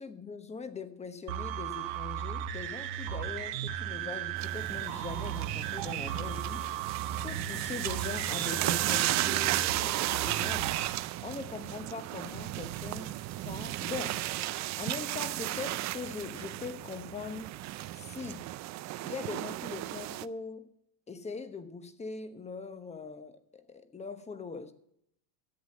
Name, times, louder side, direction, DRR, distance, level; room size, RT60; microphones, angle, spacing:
voice 1, 0.0-6.7 7.2-10.8 11.2-14.3 14.8-17.6 17.9-18.5 19.0-20.7 21.1-24.7, left 4 dB, 15° left, 1.0 m, -41 dB
sound 1, 1.3-10.9, right 11 dB, 60° right, 1.3 m, -36 dB
sound 2, 4.4-20.3, right 16 dB, 40° right, 0.5 m, -34 dB
13.5 x 8.1 x 7.7 m
supercardioid pair, 125°, 47 cm